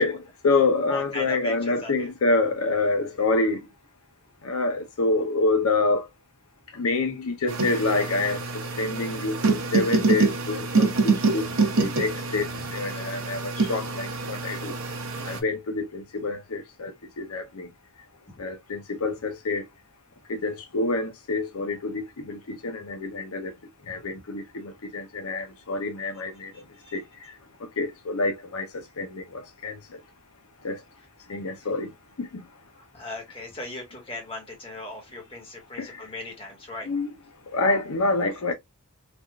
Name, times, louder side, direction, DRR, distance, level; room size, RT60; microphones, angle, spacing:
voice 1, 0.0-3.6 4.4-6.1 6.7-14.8 15.2-17.7 18.4-19.6 20.3-23.5 23.9-26.5 26.9-27.0 27.8-30.0 30.6-30.8 31.3-31.9 32.2-32.4 35.8-36.0 36.9-37.1 37.5-38.5, left 3 dB, 75° left, 0.6 m, -27 dB
voice 2, 0.9-2.1 23.8-23.9 26.5-27.0 32.7-36.9, left 1 dB, 25° left, 1.2 m, -38 dB
sound 1, 7.5-15.4, right 3 dB, 65° right, 0.7 m, -26 dB
3.4 x 2.4 x 2.3 m
head